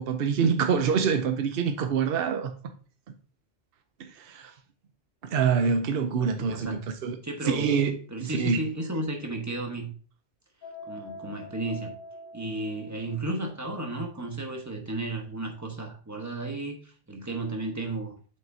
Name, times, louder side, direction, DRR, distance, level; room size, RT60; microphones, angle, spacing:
voice 1, 0.0-2.5 4.0-4.5 5.3-7.2 7.5-8.6, right 6 dB, 60° right, 0.9 m, -26 dB
voice 2, 6.2-6.8 7.2-7.7 8.1-9.9 10.9-11.9 12.3-18.2, right 2 dB, 15° right, 1.1 m, -33 dB
sound 1, 10.6-13.4, left 1 dB, 50° left, 2.2 m, -44 dB
7.5 x 5.4 x 2.7 m
omnidirectional pair, 1.1 m